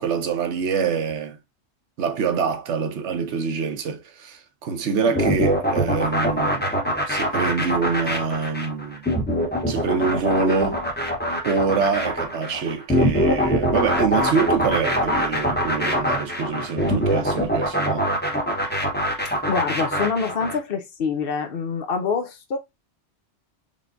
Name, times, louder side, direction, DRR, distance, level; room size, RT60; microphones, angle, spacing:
voice 1, 0.0-1.4 2.0-6.7 7.1-9.1 9.7-10.8 11.4-18.1, right 5 dB, 85° right, 1.1 m, -25 dB
sound 1, 5.2-20.6, equal, 10° left, 0.8 m, -23 dB
voice 2, 19.5-22.6, left 5 dB, 60° left, 0.9 m, -25 dB
5.1 x 3.3 x 2.5 m
omnidirectional pair, 1.1 m